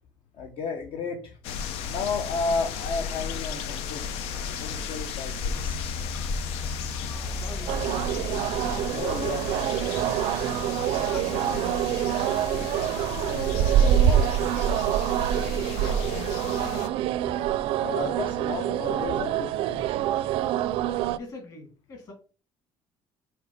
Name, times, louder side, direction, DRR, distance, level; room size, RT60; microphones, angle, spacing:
voice 1, 0.4-1.4 1.9-5.7 8.9-9.7 13.3-14.4 17.8-19.9, left 4 dB, 65° left, 3 dB, 1.3 m, -33 dB
sound 1, 1.4-16.9, left 6 dB, 90° left, 0.9 m, -34 dB
sound 2, 5.4-10.3, left 3 dB, 15° left, 0.4 m, -37 dB
voice 2, 7.3-8.4 11.0-12.0 15.5-16.9 21.1-22.1, left 2 dB, 40° left, 2 dB, 3.0 m, -43 dB
sound 3, 7.7-21.2, right 11 dB, 70° right, 0.5 m, -26 dB
5.8 x 4.7 x 5.7 m, 0.35 s
cardioid pair, 160°, 10 cm